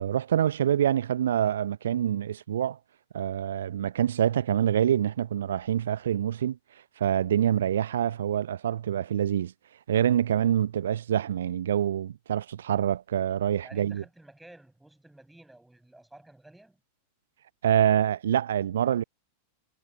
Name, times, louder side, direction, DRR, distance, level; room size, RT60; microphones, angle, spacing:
voice 1, 0.0-2.8 3.1-6.6 7.0-9.5 9.9-14.0 17.6-19.0, right 10 dB, 65° right, 0.5 m, -26 dB
voice 2, 13.6-16.8, right 1 dB, 5° right, 6.6 m, -52 dB
figure-of-eight pair, 90°, 0 cm